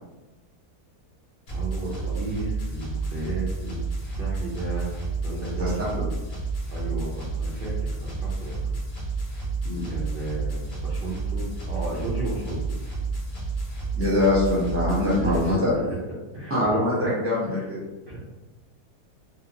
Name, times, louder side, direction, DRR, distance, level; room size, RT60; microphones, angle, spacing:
sound 1, 1.5-15.5, right 4 dB, 50° left, 0.4 m, -30 dB
voice 1, 1.5-6.0 6.7-8.8 9.9-12.8 15.0-15.6 16.3-16.7 17.0-17.1 17.4-17.7 18.1-18.2, right 2 dB, 80° right, -6 dB, 0.5 m, -34 dB
voice 2, 13.9-15.7 16.5-17.8, left 1 dB, 10° right, -7 dB, 0.7 m, -23 dB
2.7 x 2.1 x 2.8 m, 1.1 s
omnidirectional pair, 1.7 m